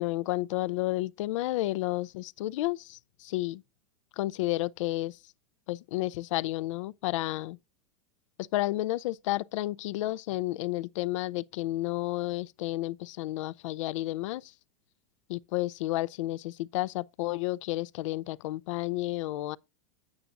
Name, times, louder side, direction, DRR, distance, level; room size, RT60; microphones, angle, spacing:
voice 1, 0.0-3.6 4.2-5.2 5.7-7.6 8.4-14.5 15.3-19.6, left 17 dB, 70° left, 0.4 m, -31 dB
9.5 x 8.8 x 2.5 m
hypercardioid pair, 115°, 16 cm